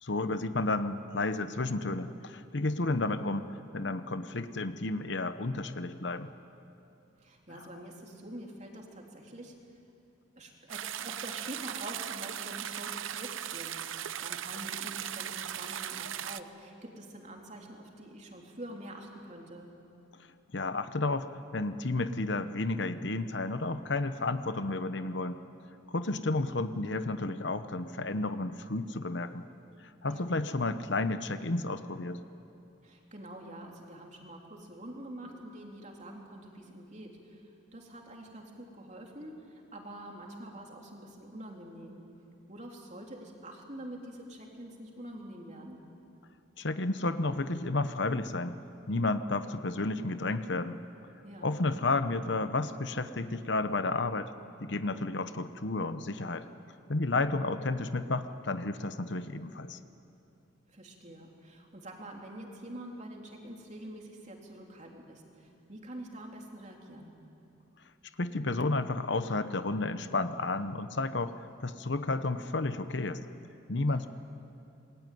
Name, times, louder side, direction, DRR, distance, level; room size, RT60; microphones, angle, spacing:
voice 1, 0.0-3.5 3.7-6.3 7.5-7.7 20.5-25.4 25.9-29.4 29.8-32.2 46.6-48.6 48.9-50.8 51.4-54.3 54.6-56.5 56.9-59.8 68.2-71.3 71.6-73.2 73.7-74.1, left 2 dB, 60° left, 11 dB, 1.0 m, -32 dB
voice 2, 7.2-9.5 10.4-19.7 30.0-30.3 32.8-37.4 37.7-42.0 42.5-45.8 51.2-51.5 57.1-57.5 60.7-67.1 73.9-74.1, right 1 dB, 35° right, 1 dB, 3.4 m, -46 dB
sound 1, 10.7-16.4, right 10 dB, 85° right, 0.7 m, -38 dB
26.5 x 21.0 x 9.4 m, 2.8 s
head